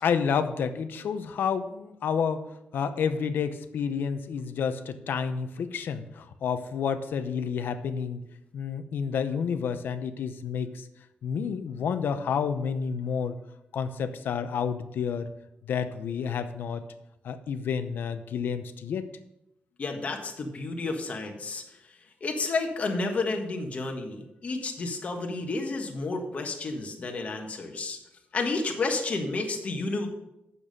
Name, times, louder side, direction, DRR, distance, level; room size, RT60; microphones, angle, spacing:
voice 1, 0.0-2.4 2.7-8.2 8.5-10.9 11.2-13.4 13.7-15.3 15.7-16.9 17.2-19.1, left 6 dB, 80° left, 10 dB, 0.8 m, -30 dB
voice 2, 19.8-21.6 22.2-28.0 28.3-30.1, left 3 dB, 40° left, 3 dB, 1.4 m, -31 dB
8.7 x 7.0 x 5.3 m, 0.85 s
wide cardioid pair, 160°, 3 cm